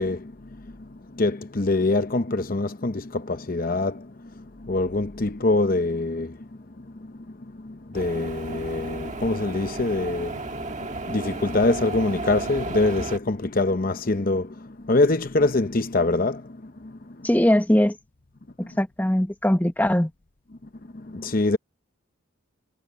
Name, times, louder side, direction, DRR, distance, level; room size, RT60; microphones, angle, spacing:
voice 1, 0.0-6.5 6.8-17.3 20.9-21.6, left 2 dB, 45° left, 0.8 m, -25 dB
sound 1, 7.9-13.2, right 2 dB, 35° right, 1.6 m, -34 dB
voice 2, 17.2-18.0 18.8-20.1, left 1 dB, 10° left, 1.0 m, -20 dB
head